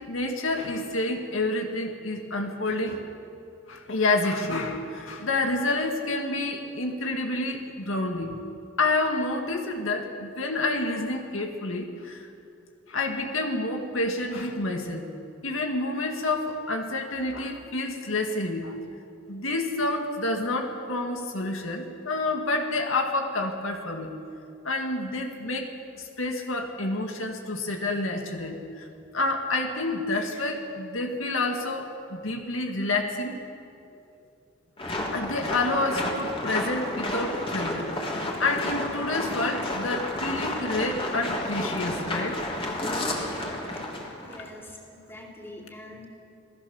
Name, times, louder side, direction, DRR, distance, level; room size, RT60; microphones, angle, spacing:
voice 1, 0.1-3.1 3.7-8.4 8.8-12.3 12.9-15.1 15.4-18.8 19.3-24.1 24.6-25.7 26.0-28.9 29.1-33.4 35.1-42.4, left 2 dB, 80° left, 3 dB, 2.1 m, -29 dB
sound 1, 34.8-44.4, left 1 dB, 30° left, 3.3 m, -31 dB
voice 2, 44.2-46.1, left 1 dB, 10° left, -1 dB, 3.8 m, -44 dB
27.5 x 18.0 x 7.2 m, 2.6 s
head